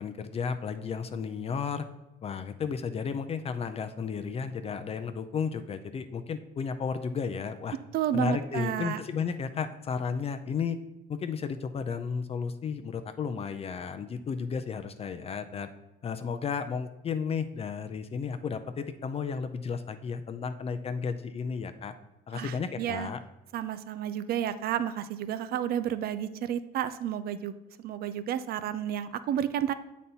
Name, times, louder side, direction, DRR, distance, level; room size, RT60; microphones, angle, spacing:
voice 1, 0.0-1.9 2.2-7.8 8.1-10.8 11.1-15.7 16.0-21.9 22.3-23.2, left 6 dB, 35° left, 9 dB, 0.5 m, -33 dB
voice 2, 7.9-9.0 22.3-23.1 23.5-29.7, right 10 dB, 65° right, 13 dB, 0.6 m, -31 dB
7.7 x 4.2 x 5.5 m, 1.0 s
cardioid pair, 110°, 17 cm